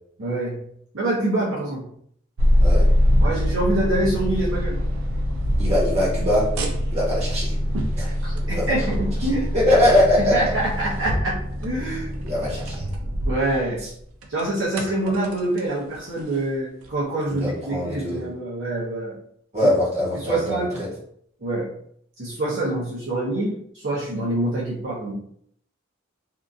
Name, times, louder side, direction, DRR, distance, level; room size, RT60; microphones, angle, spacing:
voice 1, 0.2-0.6 0.9-1.9 3.2-4.8 8.0-9.6 10.2-12.1 13.2-13.8 14.3-19.2 20.1-20.9 21.4-21.7 22.2-25.1, right 1 dB, 65° right, -7 dB, 0.9 m, -26 dB
sound 1, 2.4-13.9 14.2-15.6 15.9-16.2 16.9-17.0 17.4-17.5, equal, 85° right, 0.5 m, -23 dB
voice 2, 5.6-6.5 6.9-7.5 8.0-8.1 8.5-8.8 9.5-10.4 12.2-12.8 17.3-18.2 19.5-20.9, left 1 dB, 30° right, -6 dB, 1.1 m, -21 dB
2.8 x 2.4 x 2.5 m, 0.65 s
head